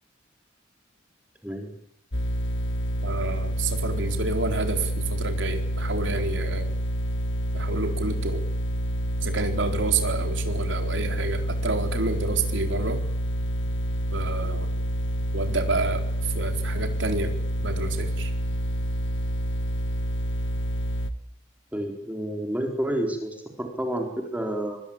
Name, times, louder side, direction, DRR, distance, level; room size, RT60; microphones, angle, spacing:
sound 1, 2.1-21.1, equal, 65° left, 1.9 m, -28 dB
voice 1, 3.0-6.7 7.5-8.4 9.2-13.0 14.1-14.7 15.3-17.3 17.6-18.3, right 3 dB, 65° right, 5 dB, 4.1 m, -29 dB
voice 2, 21.7-24.8, right 1 dB, 5° right, 3 dB, 4.1 m, -29 dB
25.0 x 24.5 x 8.9 m, 0.68 s
head